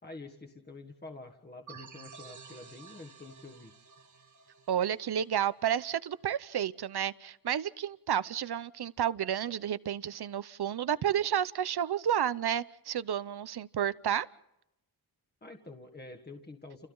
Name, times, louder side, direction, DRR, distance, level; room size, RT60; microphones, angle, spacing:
voice 1, 0.0-3.7 15.4-16.9, left 2 dB, 25° left, 4 dB, 1.7 m, -47 dB
sound 1, 1.7-6.1, right 6 dB, 45° right, 1.5 m, -53 dB
voice 2, 4.7-14.3, right 9 dB, 75° right, 16 dB, 0.9 m, -31 dB
30.0 x 29.5 x 4.0 m, 0.84 s
wide cardioid pair, 145°, 40 cm